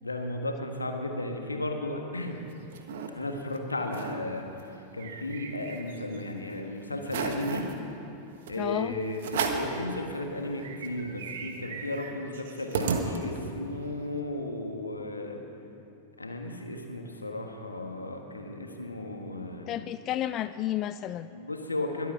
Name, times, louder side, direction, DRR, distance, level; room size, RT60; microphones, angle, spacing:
voice 1, 0.0-2.4 3.1-4.4 4.9-7.7 8.5-15.4 16.2-19.7 21.3-22.1, left 2 dB, 80° left, 3 dB, 1.5 m, -34 dB
sound 1, 2.3-3.1 3.5-3.6 3.8-4.2 4.6-6.2 6.6-6.7 7.0-7.7 8.5-8.6 9.2-9.8 10.2-10.3 10.6-13.6, right 6 dB, 55° right, 1.3 m, -34 dB
voice 2, 8.5-9.0 19.7-21.3, left 12 dB, 35° left, 13 dB, 0.3 m, -31 dB
22.0 x 8.4 x 5.8 m, 2.9 s
figure-of-eight pair, 90°, 0 cm